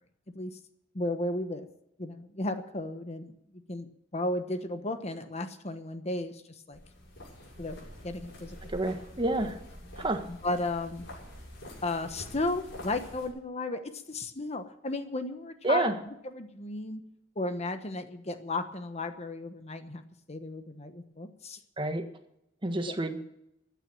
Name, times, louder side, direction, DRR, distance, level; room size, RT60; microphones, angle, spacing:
voice 1, 0.9-1.7 2.0-3.3 3.7-6.4 6.7-6.8 7.6-8.6 10.3-11.1 11.8-15.9 16.2-17.0 17.4-20.0 20.3-21.6 22.9-23.0, left 2 dB, 35° left, 8 dB, 1.1 m, -34 dB
sound 1, 6.7-13.3, equal, 65° left, 6.9 m, -46 dB
voice 2, 8.6-9.6 10.0-10.2 15.6-15.9 21.8-22.0 22.6-23.2, right 2 dB, 25° right, 7 dB, 1.4 m, -29 dB
15.0 x 9.3 x 8.9 m, 0.80 s
head